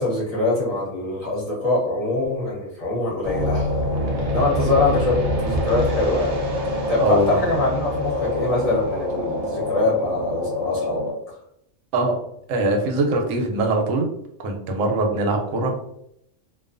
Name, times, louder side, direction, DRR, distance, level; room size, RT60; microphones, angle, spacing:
voice 1, 0.0-3.8 4.2-6.3 6.9-11.0, left 2 dB, 35° left, -5 dB, 0.8 m, -23 dB
sound 1, 3.2-11.1, left 1 dB, 55° right, 0.4 m, -25 dB
voice 2, 7.0-7.4 11.9-12.2 12.5-14.1 14.4-15.7, right 2 dB, 85° right, 3 dB, 1.0 m, -22 dB
2.4 x 2.3 x 2.4 m, 0.75 s
omnidirectional pair, 1.3 m